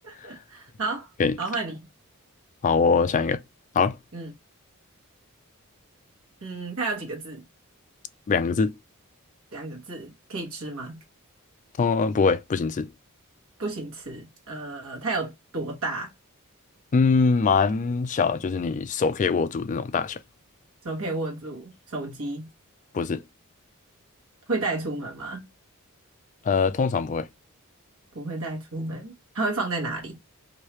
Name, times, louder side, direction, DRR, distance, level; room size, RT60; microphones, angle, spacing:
voice 1, 0.0-1.1 1.4-1.8 4.1-4.3 6.4-7.4 9.5-11.0 13.6-16.1 20.8-22.5 24.5-25.4 28.1-30.2, right 3 dB, 70° right, 1.3 m, -32 dB
voice 2, 2.6-3.4 3.7-4.0 8.3-8.7 11.8-12.9 16.9-20.2 22.9-23.2 26.4-27.3, left 5 dB, 35° left, 0.3 m, -23 dB
3.0 x 2.7 x 3.1 m
head